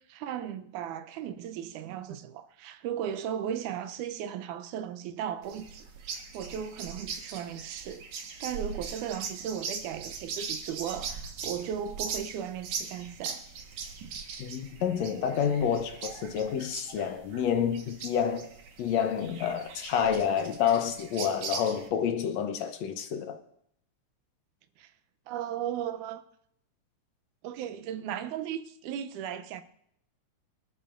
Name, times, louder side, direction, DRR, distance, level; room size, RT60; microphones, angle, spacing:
voice 1, 0.1-13.4 24.8-24.9 25.3-26.2 27.4-29.6, right 9 dB, 90° right, 2.2 m, -36 dB
sound 1, 5.4-21.9, right 5 dB, 75° right, 2.7 m, -40 dB
voice 2, 14.4-18.5 18.8-23.4, left 8 dB, 70° left, 1.9 m, -29 dB
24.5 x 12.5 x 2.6 m
omnidirectional pair, 3.4 m